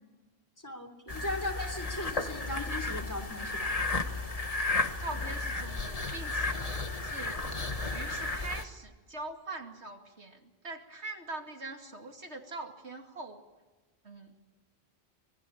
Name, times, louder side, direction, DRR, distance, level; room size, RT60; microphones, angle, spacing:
voice 1, 0.6-3.7, left 1 dB, 15° left, 5 dB, 3.3 m, -38 dB
sound 1, 1.1-8.6, left 3 dB, 35° left, 1.6 m, -33 dB
voice 2, 5.0-6.6 7.0-7.4 7.9-13.4 14.0-14.3, right 2 dB, 85° right, 3 dB, 2.8 m, -42 dB
25.5 x 21.0 x 8.8 m, 1.2 s
omnidirectional pair, 1.1 m